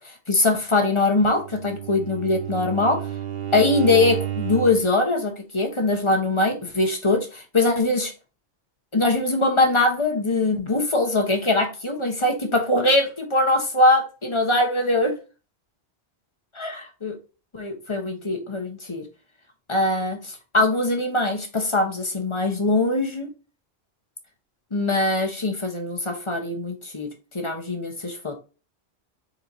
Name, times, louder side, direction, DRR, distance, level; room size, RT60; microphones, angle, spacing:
voice 1, 0.3-3.0 3.5-8.1 8.9-15.1 16.6-17.1 17.5-19.0 19.7-23.3 24.7-27.1 27.3-28.4, left 2 dB, 30° left, 4 dB, 1.0 m, -22 dB
Bowed string instrument, 1.3-4.9, right 10 dB, 65° right, 1.0 m, -30 dB
4.5 x 4.0 x 2.7 m, 0.33 s
omnidirectional pair, 1.1 m